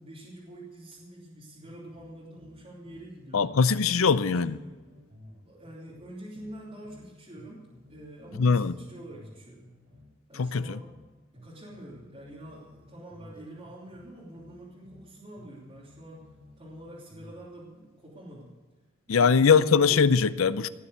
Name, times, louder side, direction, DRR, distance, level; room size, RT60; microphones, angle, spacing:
voice 1, 0.0-3.5 4.0-4.8 5.4-9.7 10.3-10.9 11.3-18.6 19.1-19.6, right 1 dB, 30° right, 3.2 m, -46 dB
sound 1, 1.6-3.1 3.4-7.1 7.4-11.1 11.4-15.1 15.4-17.5, left 1 dB, 50° right, 4.4 m, -54 dB
voice 2, 3.3-4.6 8.4-8.7 10.4-10.8 19.1-20.7, left 5 dB, 90° left, 0.6 m, -21 dB
18.5 x 7.3 x 8.2 m
head